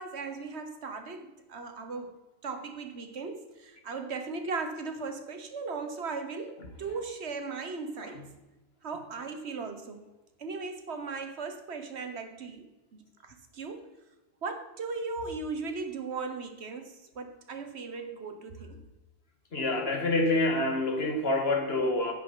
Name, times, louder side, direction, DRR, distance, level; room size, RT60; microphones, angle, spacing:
voice 1, 0.0-2.1 2.4-8.3 8.8-10.0 10.4-13.9 14.4-18.8, right 4 dB, 85° right, 7 dB, 1.5 m, -37 dB
voice 2, 19.5-22.1, left 2 dB, 70° left, 2 dB, 2.0 m, -27 dB
10.5 x 8.9 x 3.9 m, 1.1 s
omnidirectional pair, 1.1 m